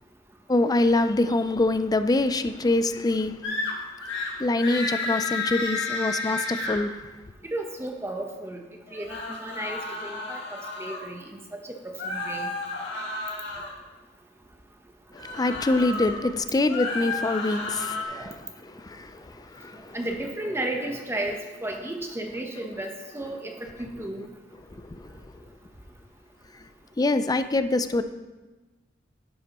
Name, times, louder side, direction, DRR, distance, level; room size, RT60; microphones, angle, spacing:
voice 1, 0.5-3.4 4.4-6.9 15.1-20.0 24.8-25.3 27.0-28.0, left 2 dB, 20° left, 10 dB, 0.4 m, -25 dB
sound 1, 3.4-3.7 4.0-4.3 4.6-6.8 8.9-11.0 12.0-13.7 15.1-16.2 16.6-18.0, left 3 dB, 65° left, 1.9 m, -32 dB
voice 2, 7.5-8.6 8.9-10.4 10.8-11.4 11.8-12.5 18.1-18.3 19.9-24.3, right 1 dB, 15° right, 2 dB, 0.9 m, -33 dB
11.0 x 9.7 x 3.0 m, 1.2 s
head